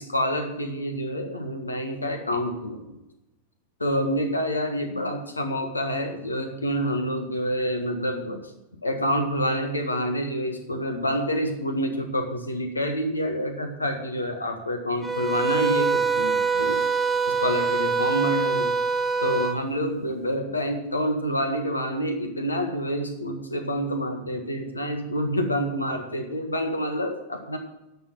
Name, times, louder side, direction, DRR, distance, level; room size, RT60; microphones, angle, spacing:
voice 1, 0.0-2.8 3.8-8.4 8.8-16.8 17.3-18.7 19.2-27.6, equal, 80° left, 5 dB, 1.7 m, -27 dB
sound 1, 15.0-19.6, right 5 dB, 5° right, 0.8 m, -24 dB
11.0 x 7.1 x 7.4 m, 0.96 s
figure-of-eight pair, 90°, 0 cm